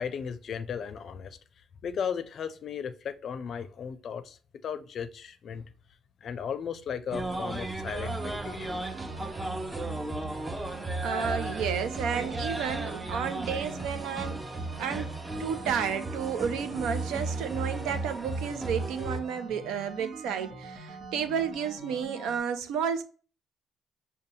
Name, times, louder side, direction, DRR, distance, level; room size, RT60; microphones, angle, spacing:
voice 1, 0.0-1.4 1.8-5.7 6.2-8.7, left 7 dB, 55° left, 0.4 m, -36 dB
sound 1, 7.1-19.2, right 2 dB, 15° right, 0.5 m, -35 dB
sound 2, 8.0-22.4, right 3 dB, 60° right, 1.0 m, -45 dB
voice 2, 11.0-14.4 14.8-15.1 15.4-23.0, right 7 dB, 85° right, 0.5 m, -32 dB
5.3 x 2.2 x 2.7 m
cardioid pair, 85°, 0 cm